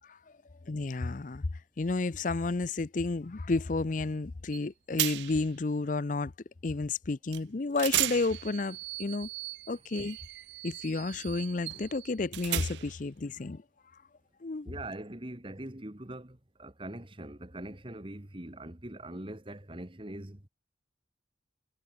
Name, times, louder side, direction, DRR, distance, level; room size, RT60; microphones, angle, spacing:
voice 1, 0.7-1.4 1.8-6.3 6.6-9.3 9.7-10.2 10.6-13.6 14.4-14.7, left 3 dB, 45° left, 0.6 m, -31 dB
sound 1, 4.5-4.7 5.0-5.5 7.3-7.4 7.8-13.1, right 17 dB, 70° right, 0.3 m, -35 dB
voice 2, 14.6-20.5, right 1 dB, 30° right, 1.8 m, -42 dB
head